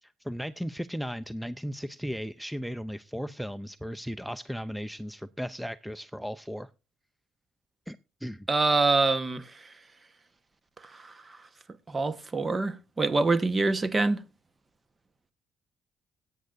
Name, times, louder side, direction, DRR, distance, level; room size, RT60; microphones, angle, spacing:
voice 1, 0.0-6.7 7.9-8.5, equal, ahead, 0.5 m, -36 dB
voice 2, 8.5-9.4 10.9-11.1 11.9-14.2, right 3 dB, 30° right, 1.2 m, -25 dB
17.0 x 9.3 x 2.6 m
supercardioid pair, 75°, 0 cm